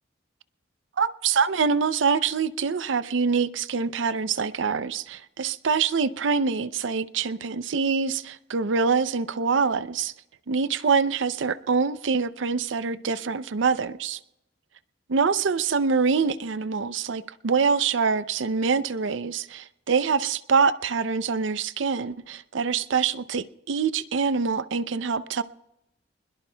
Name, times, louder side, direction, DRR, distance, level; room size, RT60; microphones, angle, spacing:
voice 1, 1.0-10.1 10.5-14.2 15.1-25.4, right 5 dB, 75° right, 0.5 m, -25 dB
22.0 x 21.0 x 2.2 m
head